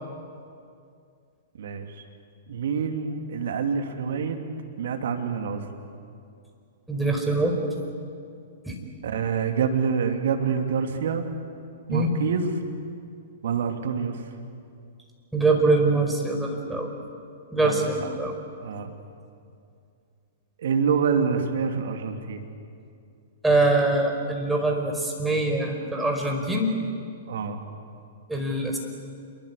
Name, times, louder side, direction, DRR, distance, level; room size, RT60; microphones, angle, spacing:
voice 1, 2.5-4.4 4.8-5.6 9.0-11.2 11.9-12.6 13.4-14.2 17.6-17.9 18.6-18.9 20.6-22.4 27.3-27.6, right 6 dB, 65° right, 5 dB, 2.7 m, -26 dB
voice 2, 6.9-7.6 8.6-8.8 11.9-12.1 15.3-16.9 17.5-18.3 23.4-26.7 28.3-28.8, right 2 dB, 5° right, 2 dB, 5.0 m, -23 dB
27.5 x 23.5 x 8.4 m, 2.4 s
figure-of-eight pair, 110°, 0 cm